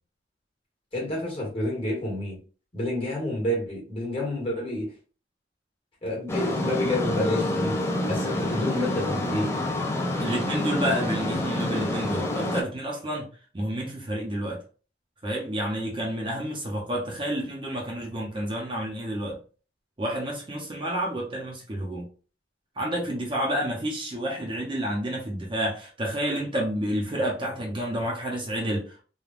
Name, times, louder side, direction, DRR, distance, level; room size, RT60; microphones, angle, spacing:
voice 1, 0.9-2.4 2.7-4.9 6.0-9.5, left 1 dB, 30° left, 1.3 m, -29 dB
sound 1, 6.3-12.6, left 1 dB, 15° left, 0.4 m, -27 dB
voice 2, 10.2-13.3 13.5-14.6 15.2-19.4 20.0-22.0 22.8-29.0, right 1 dB, 25° right, 0.6 m, -29 dB
3.3 x 2.2 x 2.4 m
head